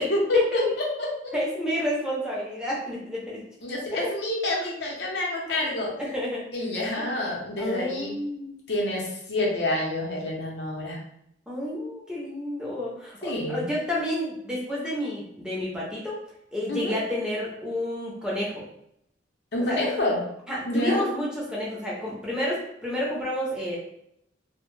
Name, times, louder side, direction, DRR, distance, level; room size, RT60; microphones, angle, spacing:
voice 1, 0.0-1.3 3.6-5.9 6.5-8.1 8.7-11.0 13.2-13.7 16.7-17.0 19.5-20.2 20.7-21.0, left 1 dB, 60° left, -2 dB, 0.7 m, -27 dB
voice 2, 1.3-3.4 4.0-4.1 5.7-6.4 7.0-7.1 7.6-8.6 11.5-16.2 16.5-18.6 19.6-19.8 20.5-23.8, left 1 dB, 5° right, -5 dB, 0.6 m, -30 dB
2.1 x 2.1 x 3.1 m, 0.75 s
head